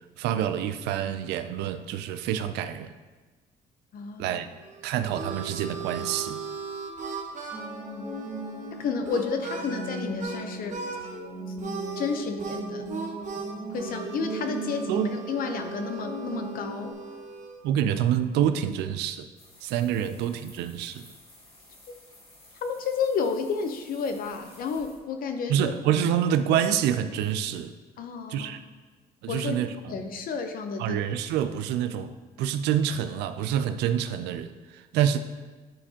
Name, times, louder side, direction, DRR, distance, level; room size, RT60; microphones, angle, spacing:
voice 1, 0.2-2.9 4.2-4.5 4.8-6.4 14.9-15.1 17.6-19.3 19.6-21.1 25.5-27.7 28.3-28.6 29.2-29.9 30.8-35.2, right 9 dB, 85° right, 10 dB, 0.4 m, -27 dB
voice 2, 3.9-4.4 7.9-8.2 8.7-10.8 12.0-12.8 13.7-16.9 21.9-22.0 22.6-25.7 28.0-28.5 29.3-29.6 29.9-31.0, left 5 dB, 60° left, 7 dB, 0.8 m, -31 dB
Harmonica, 4.6-10.4 10.7-11.2 11.6-17.6, right 5 dB, 45° right, 1.0 m, -38 dB
sound 1, 7.5-16.9, right 2 dB, 10° right, 1.4 m, -37 dB
sound 2, 19.4-25.0, left 2 dB, 35° left, 2.2 m, -54 dB
9.8 x 4.4 x 2.8 m, 1.3 s
cardioid pair, 110°, 17 cm